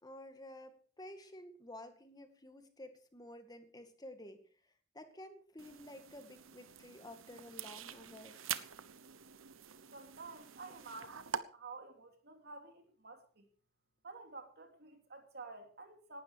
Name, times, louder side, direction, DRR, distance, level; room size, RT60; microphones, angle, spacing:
voice 1, 0.0-4.4 4.9-8.5, left 1 dB, 20° left, 2.1 m, -52 dB
sound 1, 5.6-11.4, right 8 dB, 90° right, 1.1 m, -45 dB
voice 2, 9.9-13.5 14.0-16.2, right 3 dB, 55° right, 3.0 m, -51 dB
18.0 x 12.0 x 4.8 m
head